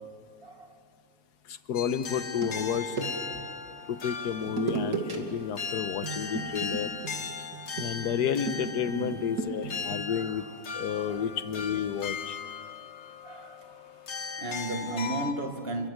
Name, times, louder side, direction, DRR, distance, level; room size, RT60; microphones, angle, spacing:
voice 1, 1.5-3.0 3.9-6.9 7.8-10.4 10.7-12.4, left 8 dB, 60° left, 1.4 m, -31 dB
sound 1, 1.7-15.3, left 5 dB, 40° left, 1.2 m, -38 dB
sound 2, 2.1-3.5 4.5-5.2 5.5-5.7 6.0-10.1, right 4 dB, 50° right, 2.9 m, -35 dB
voice 2, 8.9-9.4 10.1-10.4 11.1-11.3 13.2-13.9 14.4-15.9, right 2 dB, 35° right, 1.6 m, -35 dB
28.5 x 22.5 x 8.1 m
omnidirectional pair, 2.1 m